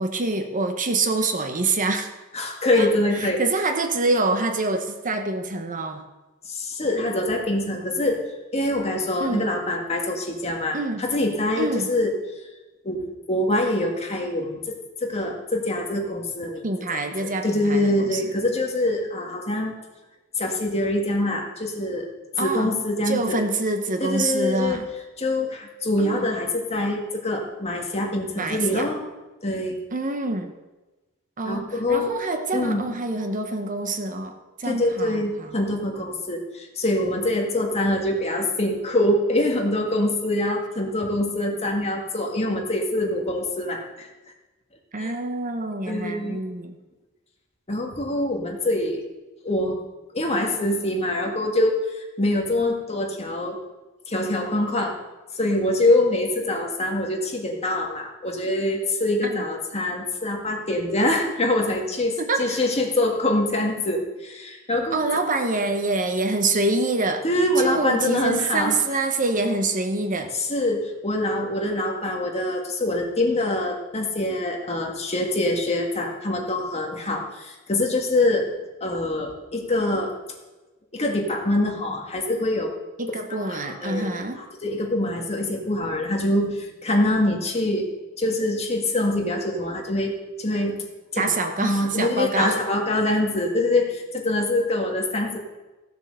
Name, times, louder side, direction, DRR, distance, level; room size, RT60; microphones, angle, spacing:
voice 1, 0.0-2.1 2.7-6.0 9.2-9.5 10.7-11.0 11.6-11.9 16.6-18.3 22.4-22.7 23.0-24.9 26.0-26.3 28.4-28.9 29.9-30.5 31.4-35.5 44.9-46.7 59.2-59.4 62.2-62.6 64.9-67.2 67.6-70.3 83.0-84.4 91.2-92.6, right 3 dB, 40° right, 6 dB, 1.0 m, -26 dB
voice 2, 2.3-3.4 6.4-8.2 8.5-12.1 12.8-14.7 15.0-19.7 20.4-22.1 22.4-23.4 24.0-24.9 25.2-29.0 29.4-29.8 31.5-32.2 32.5-32.9 34.7-44.1 45.0-45.2 45.9-46.4 47.7-49.0 49.4-49.8 50.1-53.6 54.1-55.0 55.3-65.0 67.2-68.8 70.3-78.5 78.8-80.1 80.9-82.7 83.3-87.9 88.2-90.8 91.1-91.3 91.6-95.4, left 1 dB, 30° left, 1 dB, 1.9 m, -24 dB
15.5 x 7.5 x 6.8 m, 1.1 s
head